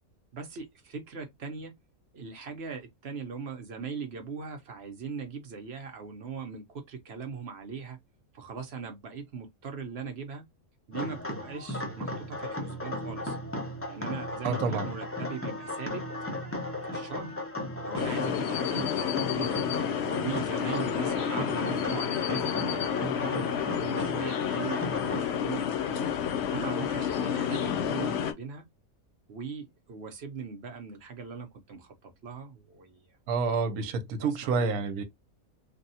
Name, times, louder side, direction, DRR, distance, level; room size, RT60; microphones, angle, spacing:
voice 1, 0.3-1.7 2.1-8.0 8.3-10.5 10.9-13.4 13.9-16.1 16.8-17.4 17.8-19.6 20.2-26.1 26.5-28.6 29.3-33.1 33.7-33.8 34.2-34.8, right 5 dB, 55° right, 0.8 m, -40 dB
sound 1, 10.9-25.2, left 1 dB, 20° left, 0.4 m, -36 dB
voice 2, 14.4-14.9 33.3-35.0, right 4 dB, 75° right, 1.1 m, -28 dB
sound 2, 17.9-28.3, left 8 dB, 65° left, 0.7 m, -30 dB
3.3 x 2.3 x 2.6 m
omnidirectional pair, 1.6 m